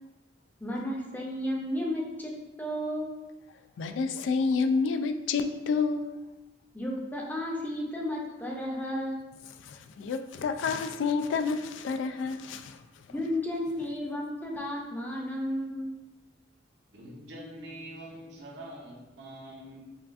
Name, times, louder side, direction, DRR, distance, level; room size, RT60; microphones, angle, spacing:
voice 1, 0.6-2.3 2.6-3.1 6.7-9.2 13.1-15.9, left 1 dB, 10° left, -2 dB, 0.5 m, -33 dB
voice 2, 3.8-6.2 9.6-12.8, left 4 dB, 85° left, 8 dB, 0.3 m, -29 dB
voice 3, 16.9-19.8, right 1 dB, 75° right, -2 dB, 0.8 m, -44 dB
5.5 x 2.4 x 2.5 m, 1.0 s
head